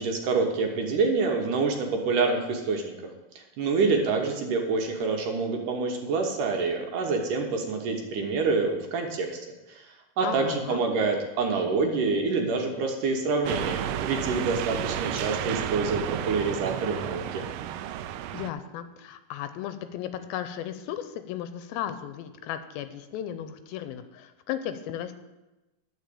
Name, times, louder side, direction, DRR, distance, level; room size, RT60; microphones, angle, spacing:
voice 1, 0.0-3.0 3.4-9.4 9.7-9.9 10.2-17.4, right 4 dB, 70° right, 2 dB, 2.4 m, -27 dB
voice 2, 10.2-10.8 18.3-25.2, left 10 dB, 85° left, 11 dB, 2.4 m, -35 dB
sound 1, 13.4-18.5, right 10 dB, 90° right, 1.9 m, -32 dB
11.5 x 4.9 x 8.4 m, 1.1 s
omnidirectional pair, 4.4 m